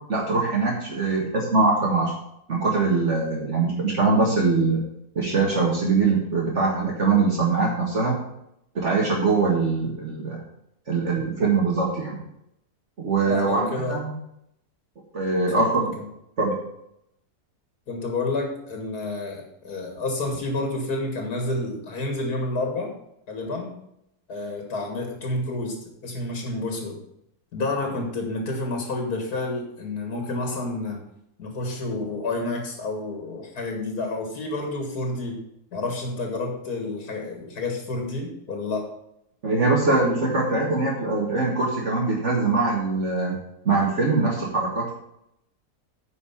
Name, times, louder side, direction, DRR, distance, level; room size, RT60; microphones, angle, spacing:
voice 1, 0.1-2.1 2.5-4.8 5.2-8.2 8.8-10.4 10.9-12.2 13.0-14.1 15.1-16.0 16.4-16.5 39.4-43.4 43.7-44.9, right 3 dB, 50° right, -2 dB, 2.0 m, -22 dB
voice 2, 13.3-14.0 15.5-16.1 17.9-23.0 23.3-23.8 24.3-27.0 27.5-31.0 31.4-35.4 35.7-38.9, left 2 dB, 85° left, 2 dB, 2.3 m, -29 dB
9.4 x 5.3 x 7.1 m, 0.78 s
omnidirectional pair, 1.6 m